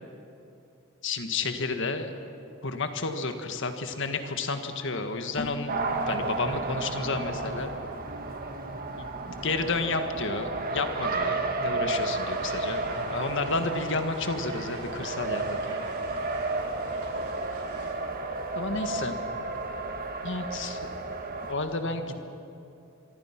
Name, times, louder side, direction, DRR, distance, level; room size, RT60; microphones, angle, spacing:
voice 1, 1.0-2.1 2.6-5.7 6.1-7.7 9.0-9.1 9.4-15.8 18.6-19.2 20.2-20.9 21.4-22.2, left 3 dB, 60° left, 7 dB, 1.7 m, -31 dB
Keyboard (musical), 5.4-9.0, left 2 dB, 30° left, 0.9 m, -44 dB
Race car auto racing, 5.7-21.5, right 2 dB, 45° right, 1.7 m, -32 dB
sound 1, 12.1-17.9, right 2 dB, 90° right, 4.1 m, -46 dB
voice 2, 18.5-19.7 21.8-22.2, equal, 85° left, 0 dB, 5.9 m, -51 dB
24.5 x 24.0 x 6.0 m, 2.6 s
head